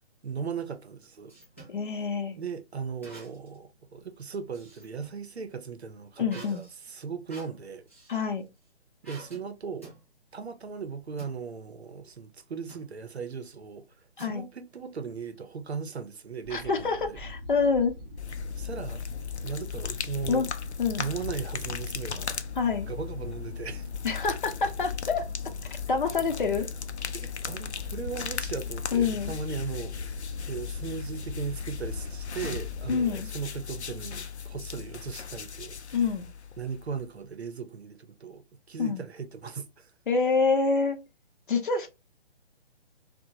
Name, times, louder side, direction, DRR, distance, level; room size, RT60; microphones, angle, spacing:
voice 1, 0.2-1.3 2.4-7.9 9.0-9.9 10.3-13.9 14.2-17.2 18.6-19.0 19.4-20.4 21.0-22.4 22.9-23.9 27.1-30.1 30.5-36.0 36.6-39.9, right 6 dB, 75° right, 0.6 m, -37 dB
sound 1, 0.7-1.8 3.0-3.6 4.0-5.2 6.3-8.3 9.0-9.5 9.8-10.0 11.2-11.4 12.7-12.9 14.2-14.8, right 2 dB, 15° left, 0.4 m, -49 dB
voice 2, 1.7-2.4 6.2-6.6 8.1-8.5 14.2-14.5 16.5-17.9 20.3-20.5 20.8-21.1 22.6-22.9 24.0-25.2 25.9-26.7 28.9-29.3 32.9-33.3 35.9-36.3 38.8-39.0 40.1-41.0 41.5-41.9, left 5 dB, 50° left, 0.7 m, -26 dB
sound 2, 16.4-33.0, left 2 dB, 15° right, 0.8 m, -44 dB
sound 3, 18.2-37.1, left 7 dB, 85° left, 0.5 m, -37 dB
2.9 x 2.1 x 2.8 m
figure-of-eight pair, 140°, 33 cm